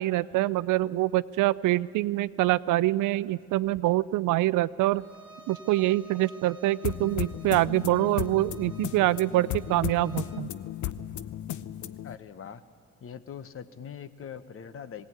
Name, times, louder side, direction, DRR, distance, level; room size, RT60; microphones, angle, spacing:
voice 1, 0.0-5.0 5.5-10.5, right 16 dB, 85° right, 19 dB, 0.5 m, -25 dB
Bowed string instrument, 4.9-10.5, right 2 dB, 15° right, 1.8 m, -52 dB
sound 1, 6.8-12.2, left 11 dB, 75° left, 0.7 m, -35 dB
voice 2, 12.0-12.6 13.0-15.1, left 8 dB, 45° left, 13 dB, 1.0 m, -42 dB
18.0 x 17.0 x 9.5 m, 2.4 s
cardioid pair, 90°, 30 cm